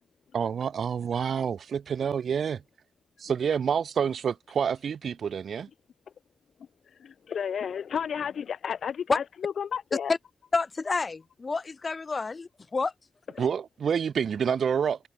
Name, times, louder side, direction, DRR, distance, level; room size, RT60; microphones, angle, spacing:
voice 1, 0.3-2.6 3.2-5.7 13.4-15.0, right 7 dB, 80° right, 0.8 m, -28 dB
voice 2, 7.0-10.1, left 7 dB, 80° left, 4.1 m, -32 dB
voice 3, 10.5-12.9, left 4 dB, 40° left, 2.9 m, -28 dB
cardioid pair, 80°, 0 cm